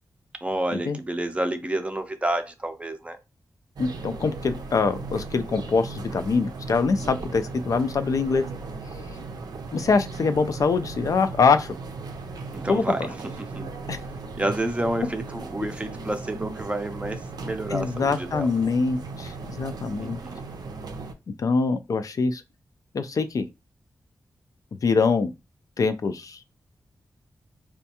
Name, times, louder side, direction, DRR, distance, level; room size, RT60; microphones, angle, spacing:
voice 1, 0.4-3.2 6.8-7.1 12.5-13.7 14.3-18.5 20.0-20.4, right 1 dB, 20° right, 0.5 m, -30 dB
voice 2, 3.8-8.4 9.7-11.7 12.7-12.8 13.9-14.0 17.7-20.2 21.4-22.4 22.9-23.5 24.8-25.3 25.8-26.6, left 4 dB, 55° left, 0.3 m, -24 dB
sound 1, 3.8-21.1, right 3 dB, 75° right, 0.5 m, -37 dB
4.2 x 2.3 x 2.8 m
wide cardioid pair, 110°, 7 cm